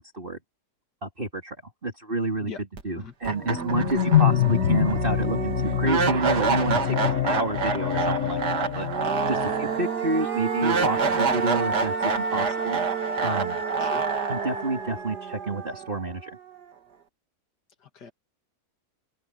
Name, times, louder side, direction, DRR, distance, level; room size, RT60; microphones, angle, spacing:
voice 1, 1.0-1.6 1.8-2.5 2.8-8.9 9.3-12.8 13.2-13.6 14.3-16.3, right 2 dB, 30° right, 3.4 m, -29 dB
voice 2, 2.4-2.6 3.0-3.1 13.8-14.0 17.8-18.1, left 6 dB, 85° left, 2.6 m, -40 dB
sound 1, 2.8-2.9 3.2-16.3, right 5 dB, 75° right, 2.5 m, -27 dB
sound 2, 3.4-9.8, left 11 dB, 55° left, 1.7 m, -25 dB
open air
omnidirectional pair, 1.7 m